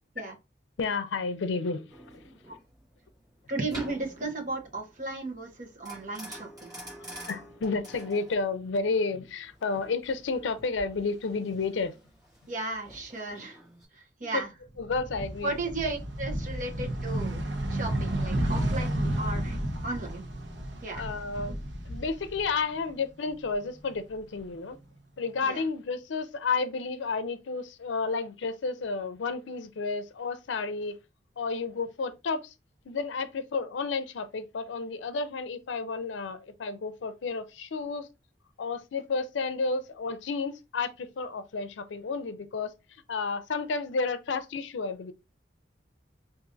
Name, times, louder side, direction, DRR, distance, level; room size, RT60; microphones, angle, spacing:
voice 1, 0.8-1.9 2.1-2.2 7.3-11.9 14.2-14.4 14.8-15.6 20.9-21.5 21.9-24.8 25.2-31.0 31.4-32.5 32.9-38.1 38.6-42.7 43.1-45.1, left 4 dB, 90° left, 0.5 m, -31 dB
sound 1, 1.9-13.9, equal, 20° right, 2.3 m, -47 dB
voice 2, 3.5-6.7 12.5-13.6 13.9-14.5 15.4-20.3 20.8-21.1 25.4-25.6, right 2 dB, 45° right, 0.9 m, -35 dB
sound 2, 14.7-22.9 23.2-24.4, right 1 dB, 80° right, 0.8 m, -32 dB
4.8 x 2.6 x 2.6 m
head